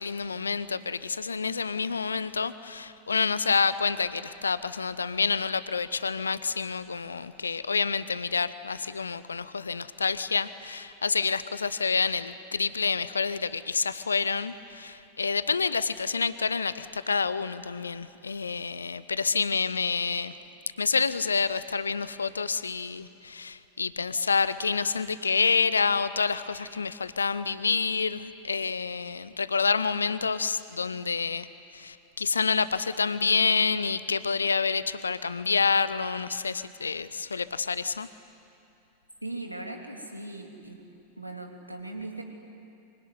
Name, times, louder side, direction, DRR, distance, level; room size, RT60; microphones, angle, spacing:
voice 1, 0.0-20.3 20.8-31.5 31.7-38.1, left 5 dB, 75° left, 15 dB, 0.7 m, -28 dB
voice 2, 39.2-40.8 41.2-42.2, right 2 dB, 85° right, 3 dB, 2.9 m, -39 dB
24.5 x 24.0 x 9.6 m, 2.7 s
figure-of-eight pair, 90°, 0 cm